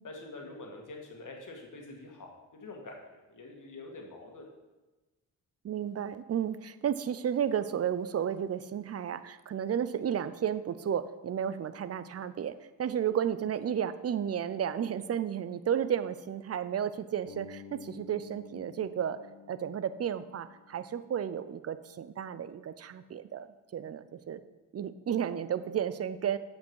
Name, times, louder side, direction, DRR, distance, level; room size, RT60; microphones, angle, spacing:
voice 1, 0.0-4.5, left 2 dB, 55° left, 1 dB, 1.8 m, -46 dB
voice 2, 5.6-19.2 19.5-23.5 23.7-24.4 24.7-26.4, right 9 dB, 40° right, 14 dB, 0.5 m, -33 dB
Bass guitar, 17.3-21.4, left 8 dB, 80° left, 0.7 m, -51 dB
7.8 x 5.3 x 4.7 m, 1.1 s
supercardioid pair, 50°, 37 cm